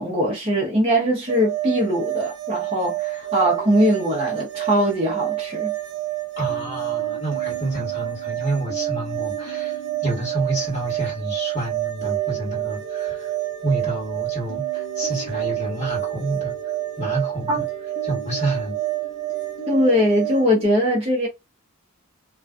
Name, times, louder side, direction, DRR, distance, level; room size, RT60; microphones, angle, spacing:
voice 1, 0.0-5.7 17.5-17.6 19.7-21.3, equal, 25° right, 0.6 m, -21 dB
sound 1, 1.3-20.5, right 18 dB, 60° right, 0.3 m, -28 dB
sound 2, 3.2-6.1 6.5-20.7, equal, 55° left, 0.6 m, -42 dB
voice 2, 6.4-13.3 13.6-16.5 17.0-17.6 18.0-18.8, right 2 dB, 35° left, 1.3 m, -28 dB
2.5 x 2.2 x 2.3 m
head